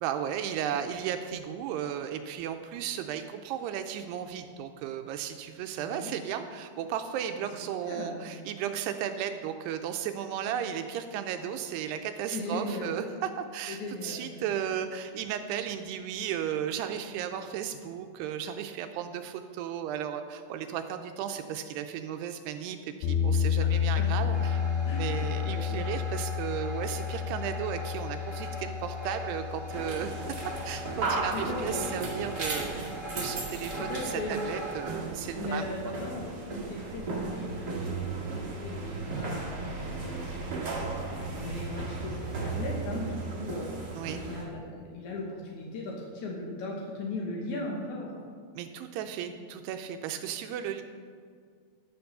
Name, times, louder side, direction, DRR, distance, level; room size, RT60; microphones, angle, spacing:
voice 1, 0.0-24.6 24.9-30.3 30.7-35.7 44.0-44.2 48.6-50.8, right 9 dB, 80° right, 7 dB, 2.4 m, -35 dB
voice 2, 5.8-6.1 7.4-7.5 7.9-8.2 12.3-13.0 13.7-14.5 23.6-23.7 24.0-24.4 24.9-25.8 31.0-32.0 33.8-34.4 35.4-48.1 49.3-49.4, left 2 dB, 70° left, -1 dB, 1.8 m, -38 dB
sound 1, 23.0-32.0, left 8 dB, 90° left, 3.2 m, -31 dB
sound 2, 24.3-34.8, equal, 25° left, 1.8 m, -41 dB
sound 3, 29.7-44.4, right 3 dB, 55° right, 1.1 m, -35 dB
11.5 x 6.9 x 6.6 m, 2.1 s
omnidirectional pair, 5.1 m